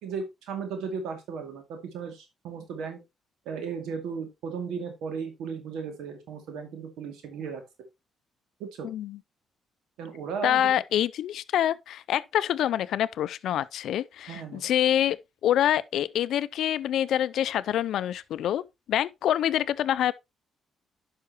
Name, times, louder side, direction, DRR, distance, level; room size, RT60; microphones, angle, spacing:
voice 1, 0.0-3.0 3.5-7.6 8.6-8.9 10.0-10.7 14.3-14.7, right 6 dB, 90° right, 2.2 m, -35 dB
voice 2, 8.8-9.2 10.4-15.2 15.4-18.6 18.9-20.1, left 11 dB, 75° left, 0.4 m, -26 dB
10.5 x 5.8 x 2.9 m
cardioid pair, 90°, 0 cm